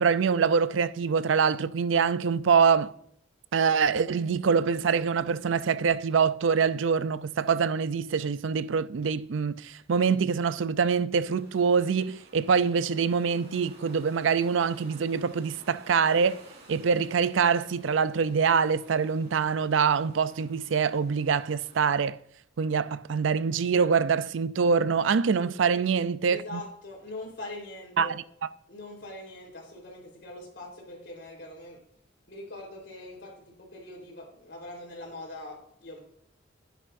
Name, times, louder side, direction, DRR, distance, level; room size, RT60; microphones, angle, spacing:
voice 1, 0.0-2.9 3.5-16.4 16.7-22.2 22.6-26.6 28.0-28.2, right 6 dB, 85° right, 0.5 m, -25 dB
sound 1, 11.3-21.9, right 2 dB, 60° right, 3.6 m, -54 dB
voice 2, 25.4-25.8 26.3-28.2 28.7-31.8 32.3-36.0, left 2 dB, 65° left, 3.9 m, -42 dB
11.0 x 10.0 x 2.6 m
head